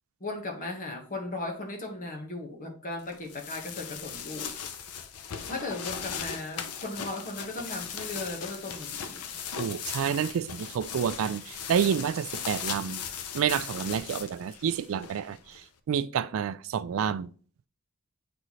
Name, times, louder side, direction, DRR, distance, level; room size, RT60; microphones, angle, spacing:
voice 1, 0.2-4.7 5.5-9.4, left 2 dB, 40° left, 1.2 m, -37 dB
sound 1, 3.1-15.6, left 7 dB, 90° left, 0.6 m, -38 dB
voice 2, 9.6-13.0 13.3-15.6 15.9-17.3, right 8 dB, 60° right, 0.3 m, -29 dB
7.6 x 4.1 x 3.1 m
head